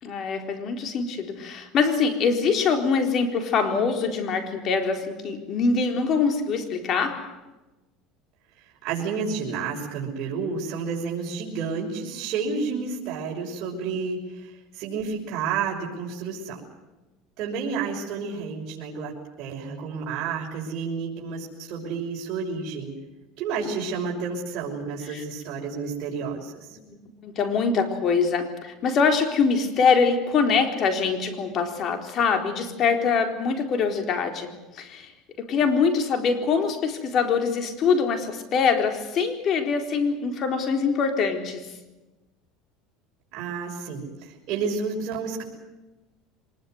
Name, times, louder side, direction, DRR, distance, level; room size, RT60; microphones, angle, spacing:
voice 1, 0.0-7.4 23.6-23.7 25.1-25.2 26.9-27.0 27.2-35.1 35.4-41.7, left 5 dB, 45° left, 5 dB, 4.1 m, -24 dB
voice 2, 8.8-16.6 17.4-22.9 23.4-26.7 43.3-45.4, right 5 dB, 50° right, -3 dB, 6.2 m, -30 dB
24.5 x 21.0 x 7.9 m, 1.1 s
supercardioid pair, 120°, 0 cm